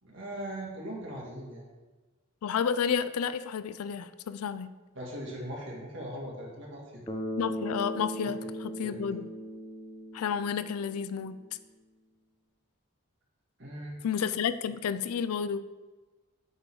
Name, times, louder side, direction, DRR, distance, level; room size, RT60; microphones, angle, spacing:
voice 1, 0.0-1.7 4.9-7.1 8.2-8.3 8.8-9.1 13.6-14.1, right 1 dB, 55° right, -3 dB, 1.8 m, -40 dB
voice 2, 2.4-4.7 7.4-9.3 10.1-11.4 14.0-15.6, left 7 dB, 80° left, 13 dB, 0.4 m, -31 dB
Bass guitar, 7.1-11.3, equal, 20° left, 0.8 m, -38 dB
8.1 x 3.8 x 4.9 m, 1.2 s
head